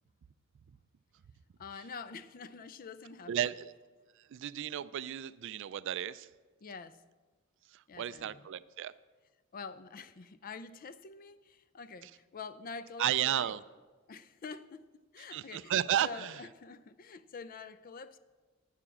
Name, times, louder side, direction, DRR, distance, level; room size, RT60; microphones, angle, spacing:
voice 1, 1.6-3.5 6.6-7.0 7.9-8.4 9.5-13.5 14.1-14.9 15.1-15.7 16.0-18.2, left 5 dB, 40° left, 0.5 m, -46 dB
voice 2, 3.3-3.7 4.3-6.3 7.7-8.9 12.0-12.1 13.0-13.6 15.3-16.4, right 10 dB, 60° right, 0.3 m, -33 dB
9.6 x 6.9 x 7.2 m
head